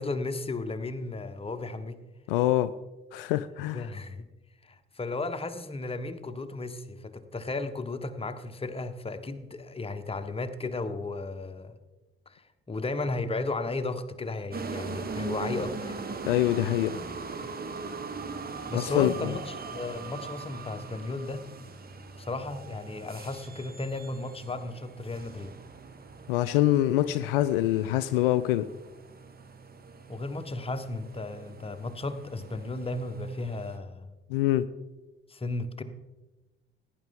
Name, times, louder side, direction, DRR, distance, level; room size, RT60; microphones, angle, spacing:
voice 1, 0.0-2.0 3.7-4.3 4.6-11.8 12.3-15.9 18.7-21.4 22.2-25.5 30.1-34.1 35.3-35.8, left 2 dB, 20° left, 1.2 m, -34 dB
voice 2, 2.3-2.7 3.1-3.9 16.3-17.0 18.7-19.1 26.3-28.7 34.3-34.7, left 14 dB, 70° left, 0.4 m, -25 dB
sound 1, 14.5-33.8, right 4 dB, 30° right, 1.5 m, -41 dB
17.5 x 9.6 x 3.8 m
figure-of-eight pair, 45°, 29 cm